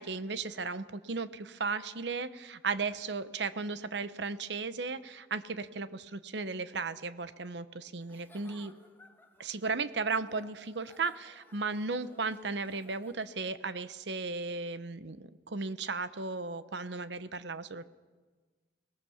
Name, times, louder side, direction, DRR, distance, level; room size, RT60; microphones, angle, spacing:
voice 1, 0.0-8.7 9.4-17.8, right 4 dB, 70° right, 13 dB, 0.9 m, -35 dB
Giggle / Chuckle chortle, 8.0-13.5, left 1 dB, 10° left, 1.7 m, -60 dB
24.0 x 19.0 x 7.1 m, 1.3 s
head